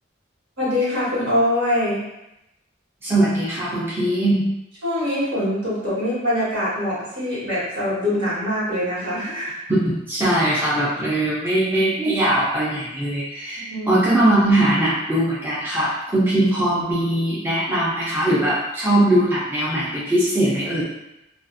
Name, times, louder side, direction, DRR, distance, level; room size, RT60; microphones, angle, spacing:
voice 1, 0.6-2.0 4.8-9.6 13.5-13.9, left 1 dB, 75° right, -9 dB, 1.4 m, -23 dB
voice 2, 3.0-4.4 9.7-20.8, right 1 dB, 10° right, -9 dB, 0.5 m, -20 dB
2.5 x 2.4 x 2.5 m, 0.89 s
head